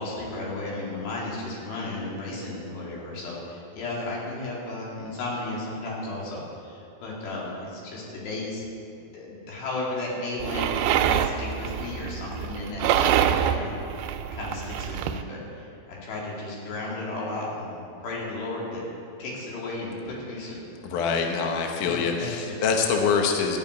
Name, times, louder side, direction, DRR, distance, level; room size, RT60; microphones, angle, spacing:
voice 1, 0.0-8.6 8.9-13.7 14.0-18.8 19.2-20.6 21.8-22.6, left 2 dB, 90° left, -4 dB, 4.5 m, -34 dB
sound 1, 10.4-15.2, right 9 dB, 85° right, 2.6 m, -26 dB
voice 2, 20.8-23.6, left 5 dB, 65° left, 2 dB, 2.2 m, -25 dB
14.0 x 5.5 x 9.3 m, 2.7 s
omnidirectional pair, 4.7 m